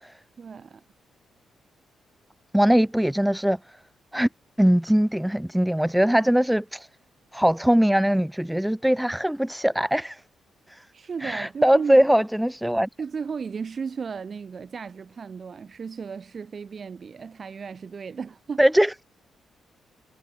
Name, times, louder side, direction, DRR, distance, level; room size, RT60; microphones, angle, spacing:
voice 1, 0.4-0.8 10.9-12.0 13.0-18.6, right 6 dB, 40° right, 6.0 m, -35 dB
voice 2, 2.5-3.8 4.1-4.3 4.6-6.9 7.3-10.2 10.7-10.9 11.2-12.9 18.6-18.9, equal, 5° right, 1.2 m, -21 dB
cardioid pair, 110°, 0 cm